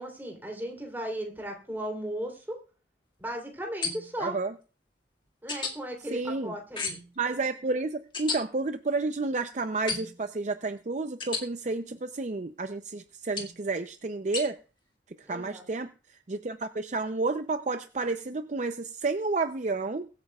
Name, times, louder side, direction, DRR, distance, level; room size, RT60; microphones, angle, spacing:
voice 1, 0.0-2.6 3.2-4.4 5.4-7.0 15.3-15.6, right 1 dB, 10° right, 1 dB, 3.4 m, -36 dB
sound 1, 3.8-4.3 5.5-5.7 6.8-7.2 8.1-8.4 9.9-10.2 11.2-11.4 13.4-13.6 14.3-14.5, left 4 dB, 25° left, 1.9 m, -33 dB
voice 2, 4.2-4.5 6.1-6.5 7.2-14.6 15.2-20.1, right 3 dB, 40° right, 9 dB, 0.5 m, -31 dB
22.5 x 8.9 x 2.4 m, 0.36 s
head